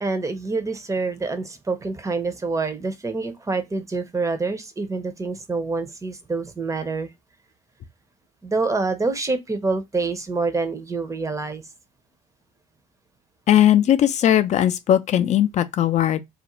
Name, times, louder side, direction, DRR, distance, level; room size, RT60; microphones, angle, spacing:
voice 1, 0.0-7.1 8.4-11.6, right 3 dB, 20° right, 0.6 m, -26 dB
voice 2, 13.5-16.2, left 11 dB, 45° left, 0.4 m, -18 dB
2.4 x 2.1 x 3.0 m
hypercardioid pair, 65°, 16 cm